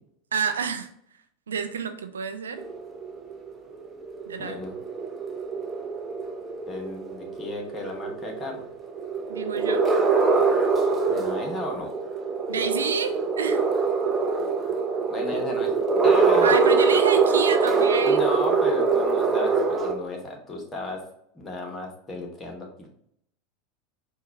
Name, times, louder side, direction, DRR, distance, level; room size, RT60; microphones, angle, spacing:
voice 1, 0.3-0.9 1.5-2.7 4.3-4.6 9.3-9.8 12.5-13.6 16.4-18.2, right 6 dB, 75° right, 8 dB, 0.3 m, -29 dB
Strange Space Sound, 2.6-19.9, right 4 dB, 20° right, 0.6 m, -24 dB
voice 2, 4.4-4.8 6.7-8.7 11.1-11.9 15.1-15.7 16.0-16.6 18.0-21.0 21.3-22.9, left 2 dB, 20° left, 1 dB, 1.1 m, -34 dB
4.4 x 2.3 x 4.0 m, 0.72 s
figure-of-eight pair, 80°, 0 cm